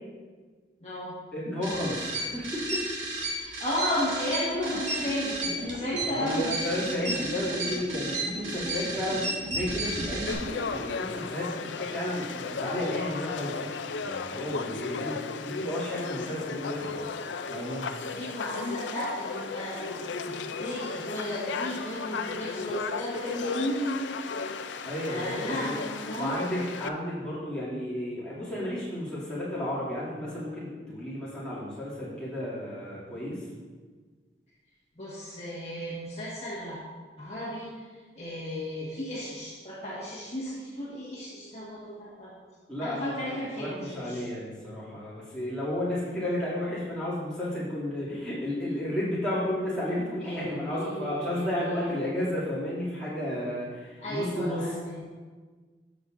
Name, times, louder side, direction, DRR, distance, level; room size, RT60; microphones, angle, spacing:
voice 1, 0.8-1.2 3.2-6.5 18.1-24.5 25.1-26.4 35.0-36.8 37.2-37.9 38.1-42.3 42.8-44.3 50.2-52.0 54.0-55.0, left 1 dB, 35° left, -8 dB, 1.4 m, -34 dB
voice 2, 1.3-2.8 6.1-13.6 14.0-17.0 17.4-17.8 24.8-25.7 26.1-33.5 42.7-54.7, left 1 dB, 5° left, -10 dB, 2.5 m, -32 dB
sound 1, 1.6-10.3, right 2 dB, 85° right, 2.4 m, -33 dB
sound 2, 4.5-10.9, right 1 dB, 30° right, 0.5 m, -40 dB
Conversation / Crowd, 10.3-26.9, left 5 dB, 75° left, 0.4 m, -35 dB
12.5 x 6.3 x 2.6 m, 1.5 s
head